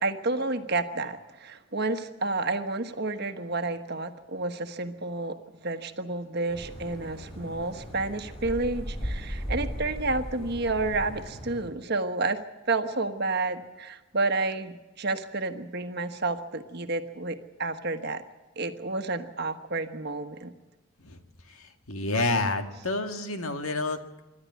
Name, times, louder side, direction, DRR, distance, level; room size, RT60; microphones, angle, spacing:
voice 1, 0.0-12.4 12.7-18.2 18.6-20.5, right 3 dB, 50° right, 7 dB, 1.3 m, -30 dB
sound 1, 6.5-11.6, equal, 30° left, 7.7 m, -37 dB
voice 2, 21.0-24.2, left 2 dB, 85° left, 6 dB, 1.9 m, -30 dB
26.5 x 12.0 x 9.4 m, 1.1 s
head